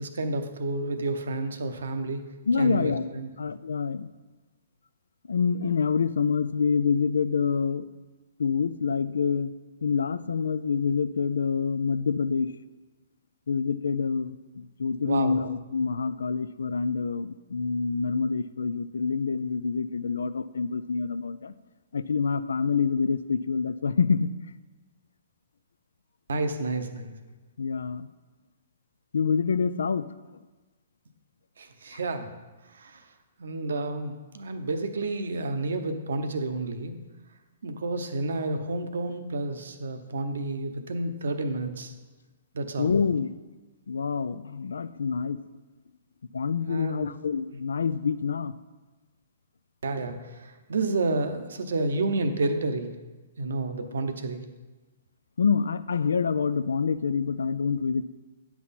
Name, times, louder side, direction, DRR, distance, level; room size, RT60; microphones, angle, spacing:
voice 1, 0.0-2.2 2.6-3.3 15.0-15.4 26.3-27.1 31.6-32.3 32.7-33.0 33.4-37.0 37.6-41.9 42.5-42.9 46.7-47.1 49.8-52.9 53.4-54.4, right 2 dB, 80° right, 8 dB, 0.9 m, -30 dB
voice 2, 2.5-3.1 3.4-4.1 5.3-7.8 8.4-9.5 9.8-12.5 13.5-21.5 21.9-24.3 27.6-28.1 29.1-30.1 42.8-43.3 43.9-45.4 46.3-48.5 55.4-58.1, left 5 dB, 85° left, 15 dB, 0.3 m, -26 dB
9.5 x 5.9 x 4.2 m, 1.2 s
hypercardioid pair, 135°, 0 cm